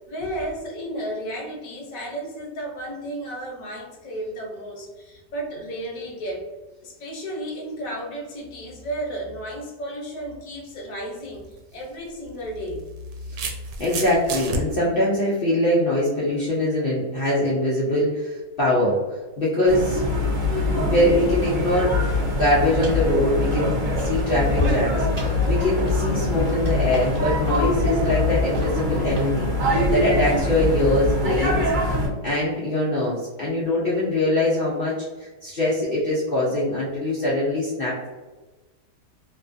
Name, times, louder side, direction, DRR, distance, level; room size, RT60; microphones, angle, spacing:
voice 1, 0.0-6.4 6.8-12.9 29.9-30.2, right 1 dB, 60° left, -1 dB, 1.0 m, -33 dB
sound 1, 11.4-11.6 12.7-14.6, right 3 dB, 85° right, 1.2 m, -30 dB
voice 2, 13.8-19.0 19.4-20.0 20.7-22.0 22.3-31.7 32.2-38.1, left 1 dB, 80° left, -6 dB, 0.5 m, -23 dB
sound 2, 19.7-32.1, left 2 dB, 60° right, 0.5 m, -23 dB
sound 3, 22.2-22.4 22.8-23.1 23.4-24.2 24.5-30.1, right 1 dB, 35° right, 0.9 m, -35 dB
2.9 x 2.4 x 2.4 m, 1.2 s
omnidirectional pair, 1.8 m